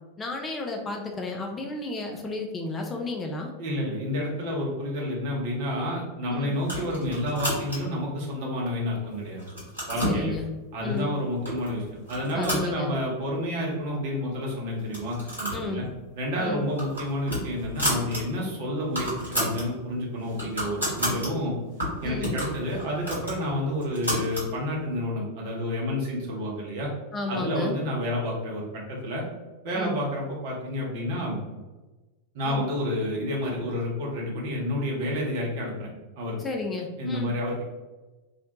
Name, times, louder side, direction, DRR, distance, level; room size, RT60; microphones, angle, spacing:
voice 1, 0.2-3.5 6.3-6.5 10.0-10.5 10.8-11.1 12.3-12.9 15.5-15.8 16.4-16.6 18.4-18.5 22.0-22.3 27.1-27.8 29.7-30.0 32.4-32.6 36.4-37.3, left 3 dB, 20° left, 2 dB, 0.3 m, -32 dB
voice 2, 3.6-9.4 9.9-10.3 10.7-15.8 16.1-21.6 22.0-26.9 27.3-29.2 29.6-31.4 32.3-35.9 36.2-36.4 37.0-37.6, left 1 dB, 50° right, -3 dB, 0.8 m, -29 dB
sound 1, 6.6-8.0 8.6-9.1 9.4-10.2 11.0-11.1 11.4-11.7 12.0-13.3 13.6-13.7 13.9-14.0 14.8-15.7 16.0-16.2 16.6-18.2 18.5-18.6 18.8-19.7 20.1-21.3 21.8-24.5, equal, 85° right, 1.0 m, -31 dB
2.4 x 2.1 x 2.8 m, 1.2 s
figure-of-eight pair, 90°, 0 cm